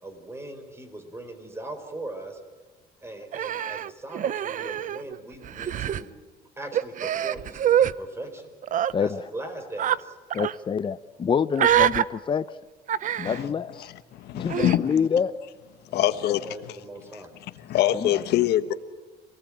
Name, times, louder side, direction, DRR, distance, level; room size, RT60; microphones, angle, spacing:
voice 1, 0.0-2.4 3.0-6.2 6.6-8.5 9.0-10.2 15.9-16.1 16.4-17.3 17.9-18.2, right 1 dB, 15° right, 4.6 m, -39 dB
Human voice, 3.3-5.2 5.4-6.0 6.7-7.9 8.6-8.9 9.8-10.0 10.3-10.5 11.5-12.0 12.9-13.4 14.5-14.8, right 10 dB, 50° right, 0.7 m, -25 dB
voice 2, 10.3-12.4 13.2-13.9 14.3-15.3 17.9-18.1, left 6 dB, 30° left, 0.7 m, -26 dB
voice 3, 14.1-15.1 15.9-16.5 17.6-18.7, left 13 dB, 75° left, 1.3 m, -24 dB
27.0 x 18.5 x 8.8 m
cardioid pair, 110°, 17 cm